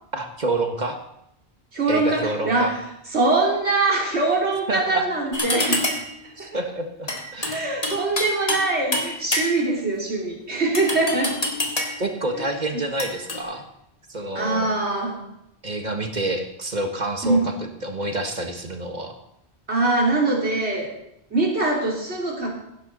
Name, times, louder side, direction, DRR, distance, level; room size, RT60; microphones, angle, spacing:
voice 1, 0.1-1.0 1.9-2.7 4.7-5.1 5.6-5.9 6.4-7.5 12.0-13.6 14.1-14.7 15.6-19.2, right 2 dB, 45° right, 5 dB, 1.5 m, -28 dB
voice 2, 1.7-2.8 3.1-5.9 6.2-6.5 7.5-11.4 12.4-12.5 12.7-12.8 14.3-15.2 17.2-17.4 19.7-20.9 21.3-22.5, right 2 dB, 85° right, -3 dB, 3.6 m, -23 dB
sound 1, 5.3-6.2 7.1-8.7 8.9-9.8 10.7-12.1 13.0-13.4, left 1 dB, 35° left, 1.9 m, -26 dB
16.0 x 12.5 x 4.0 m, 0.81 s
omnidirectional pair, 1.1 m